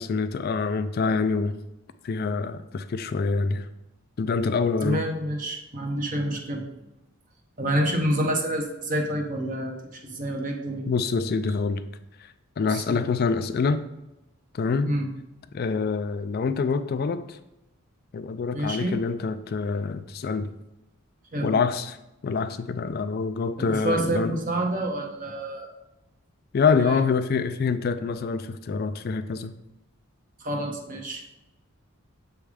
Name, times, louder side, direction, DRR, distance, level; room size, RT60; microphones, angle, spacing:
voice 1, 0.0-1.5 2.0-3.7 4.2-5.0 10.9-11.8 12.6-13.8 14.5-14.9 15.5-17.4 18.1-20.5 21.4-22.0 22.2-24.4 26.5-29.5, left 4 dB, 45° left, 11 dB, 0.3 m, -26 dB
voice 2, 4.8-6.6 7.6-10.9 12.6-13.0 14.8-15.1 18.5-18.9 21.3-21.5 23.6-25.7 26.7-27.0 30.4-31.2, right 1 dB, 40° right, 2 dB, 0.8 m, -28 dB
7.1 x 3.4 x 4.8 m, 0.91 s
head